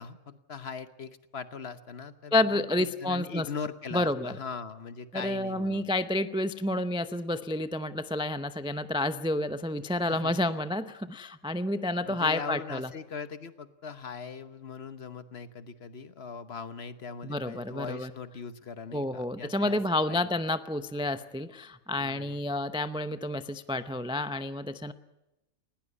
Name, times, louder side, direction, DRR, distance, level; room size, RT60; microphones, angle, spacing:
voice 1, 0.0-5.9 10.0-10.4 12.1-19.8 20.1-20.2 22.0-22.4, left 5 dB, 55° left, 12 dB, 1.3 m, -40 dB
voice 2, 2.3-3.5 3.9-4.3 5.1-12.9 17.2-18.1 18.9-24.9, left 1 dB, 5° right, 11 dB, 0.5 m, -30 dB
19.5 x 18.0 x 9.7 m, 0.97 s
omnidirectional pair, 1.4 m